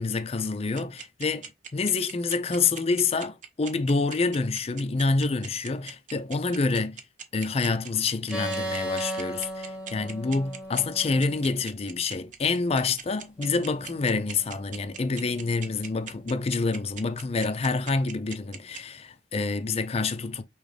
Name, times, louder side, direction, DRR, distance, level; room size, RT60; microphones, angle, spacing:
voice 1, 0.0-7.0 7.3-20.4, left 4 dB, 35° left, 0.4 m, -27 dB
sound 1, 0.8-18.8, right 7 dB, 45° right, 0.7 m, -39 dB
sound 2, 8.3-11.8 13.4-16.9, right 1 dB, 5° right, 1.0 m, -38 dB
4.8 x 3.1 x 3.2 m
head